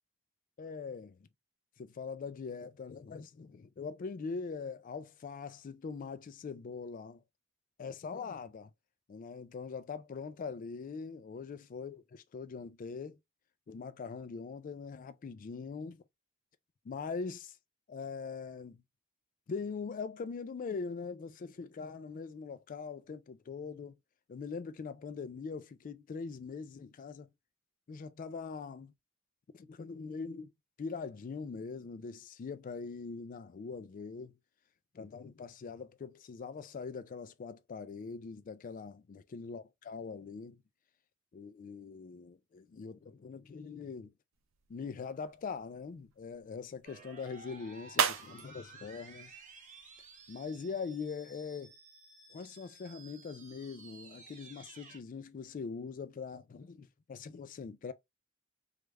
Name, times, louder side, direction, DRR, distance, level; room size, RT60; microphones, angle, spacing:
voice 1, 0.6-1.3 1.8-7.2 7.8-8.7 9.1-13.2 13.7-16.0 16.8-17.6 17.9-18.8 19.5-24.0 24.3-27.3 27.9-28.9 29.5-30.5 30.8-34.4 34.9-40.6 41.3-44.1 44.7-49.3 50.3-51.7 52.3-57.9, left 5 dB, 40° left, 0.3 m, -42 dB
sound 1, 44.3-50.3, right 7 dB, 70° right, 0.5 m, -39 dB
sound 2, 46.8-55.0, right 3 dB, 40° right, 1.0 m, -54 dB
3.2 x 2.4 x 3.1 m
head